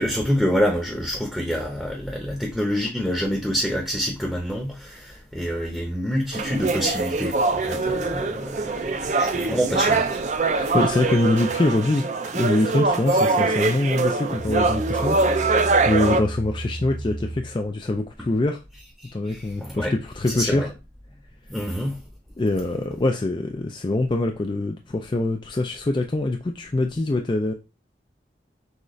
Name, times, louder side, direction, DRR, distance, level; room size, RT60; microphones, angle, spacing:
voice 1, 0.0-10.2 19.0-19.9 20.3-20.7 21.5-22.0, equal, 5° left, 0.7 m, -27 dB
sound 1, 6.3-16.2, right 3 dB, 40° right, 0.4 m, -23 dB
voice 2, 10.6-12.1 12.3-18.6 19.1-20.7 22.4-27.5, left 2 dB, 25° left, 0.3 m, -24 dB
Musical instrument, 14.1-17.7, right 2 dB, 65° right, 1.0 m, -33 dB
6.3 x 2.4 x 3.1 m
head